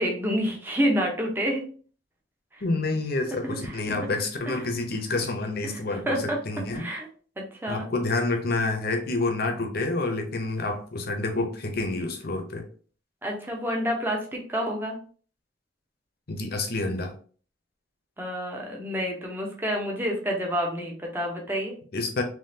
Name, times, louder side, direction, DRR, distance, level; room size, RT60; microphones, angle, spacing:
voice 1, 0.0-1.6 2.5-2.6 3.4-3.8 4.5-4.6 5.6-5.7 6.1-6.4 6.7-7.1 7.4-7.8 13.2-15.0 18.2-21.8, equal, 10° right, 0 dB, 0.9 m, -28 dB
voice 2, 2.6-6.9 7.7-12.6 16.3-17.1 21.9-22.2, left 2 dB, 55° left, 4 dB, 0.8 m, -28 dB
3.7 x 3.0 x 2.8 m, 0.42 s
head